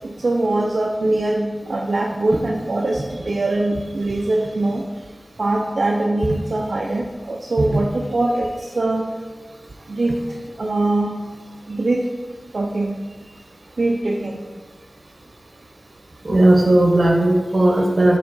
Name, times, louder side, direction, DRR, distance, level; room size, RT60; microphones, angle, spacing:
voice 1, 0.0-4.8 5.4-9.1 9.9-10.2 10.6-11.2 11.7-12.0 12.5-13.0 13.8-14.4, right 2 dB, 85° right, 0 dB, 0.5 m, -22 dB
voice 2, 16.2-18.2, right 1 dB, 65° right, 2 dB, 1.1 m, -16 dB
7.6 x 3.5 x 5.3 m, 1.4 s
wide cardioid pair, 50°, 0 cm